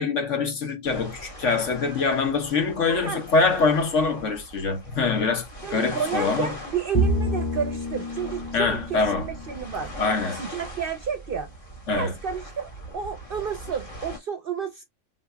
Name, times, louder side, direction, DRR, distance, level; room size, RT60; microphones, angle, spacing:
voice 1, 0.0-6.5 8.5-9.3 10.0-10.4 11.9-12.1, left 4 dB, 65° left, 1.4 m, -24 dB
sound 1, 0.8-14.2, equal, 40° left, 1.6 m, -41 dB
voice 2, 2.8-3.2 5.6-9.9 10.3-11.5 11.9-14.8, right 7 dB, 55° right, 0.6 m, -31 dB
Bowed string instrument, 6.9-10.4, equal, 20° left, 0.7 m, -29 dB
3.8 x 3.2 x 2.2 m
omnidirectional pair, 1.4 m